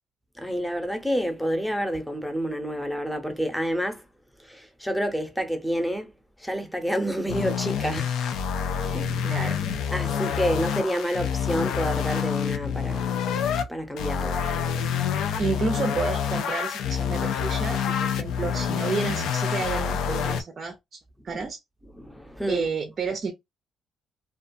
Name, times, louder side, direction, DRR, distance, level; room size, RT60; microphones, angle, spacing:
voice 1, 0.4-4.1 4.4-6.1 6.4-8.1 8.9-9.2 9.9-13.2 13.7-14.4 21.4-21.5 21.9-22.6, equal, 5° left, 0.7 m, -28 dB
sound 1, 7.3-13.6 14.0-20.4, left 7 dB, 85° left, 0.4 m, -27 dB
voice 2, 8.7-9.6 10.3-10.4 15.0-15.1 15.4-21.6 22.5-23.3, right 5 dB, 45° right, 0.4 m, -31 dB
2.3 x 2.3 x 2.5 m
cardioid pair, 90°, 0 cm